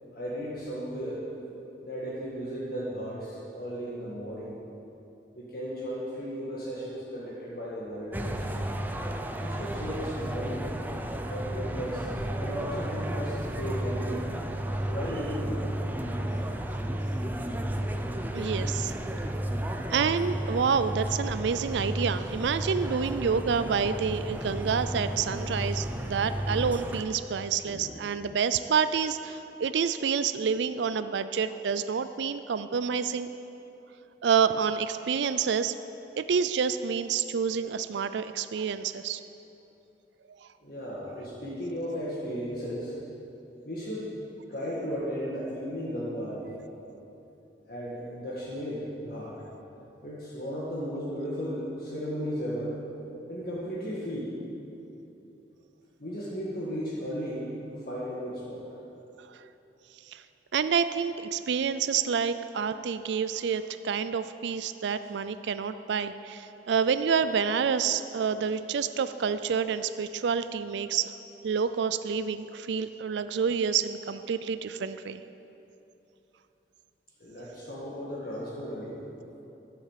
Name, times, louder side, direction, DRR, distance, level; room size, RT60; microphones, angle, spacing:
voice 1, 0.1-1.3 1.8-4.6 5.3-8.5 9.4-10.7 11.3-12.1 12.4-14.3 14.8-15.7 16.3-16.5 27.7-28.0 40.6-43.0 43.6-44.1 44.5-46.6 47.7-49.3 50.0-52.8 53.3-54.4 56.0-58.7 77.2-79.0, equal, 55° left, -7 dB, 1.9 m, -35 dB
sound 1, 8.1-27.0, right 1 dB, 10° right, 0.6 m, -33 dB
voice 2, 18.3-19.0 19.2-19.4 19.9-33.3 34.2-35.7 36.2-39.2 59.3-59.4 60.1-60.2 60.5-71.1 71.4-75.2, right 6 dB, 75° right, 12 dB, 0.4 m, -28 dB
11.5 x 8.5 x 7.4 m, 3.0 s
head